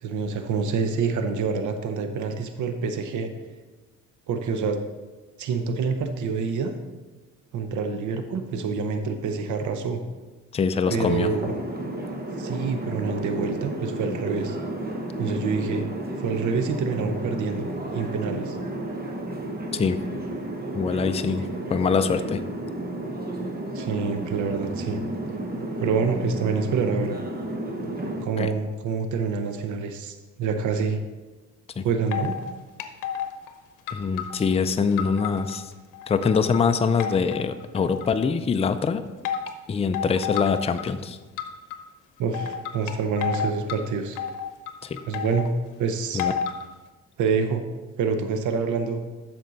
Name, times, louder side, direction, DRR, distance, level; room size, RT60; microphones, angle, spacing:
voice 1, 0.0-3.3 4.3-4.8 5.4-6.7 7.5-10.0 10.9-11.6 12.4-14.6 15.2-15.9 16.2-17.7 17.9-18.6 23.7-25.0 25.8-27.2 28.2-31.0 31.8-32.4 42.2-44.2 45.0-45.5 45.8-46.2 47.2-47.6 48.0-49.0, right 5 dB, 75° right, 7 dB, 0.8 m, -27 dB
voice 2, 10.5-11.3 19.7-20.0 20.7-21.4 21.7-22.4 28.4-28.5 31.8-31.9 33.9-35.7 36.1-39.0 39.7-41.2 44.8-45.0 46.1-46.3, left 5 dB, 20° left, 9 dB, 0.4 m, -24 dB
sound 1, 10.9-28.3, right 1 dB, 30° right, 1.1 m, -32 dB
sound 2, 32.1-32.5 32.8-33.5 33.9-35.6 35.9-36.6 37.0-38.3 39.3-39.5 39.9-40.9 41.4-41.8 42.3-43.8 44.2-45.5 46.2-46.6, left 7 dB, 90° left, 0.7 m, -30 dB
8.5 x 6.2 x 4.0 m, 1.2 s
cardioid pair, 90°, 30 cm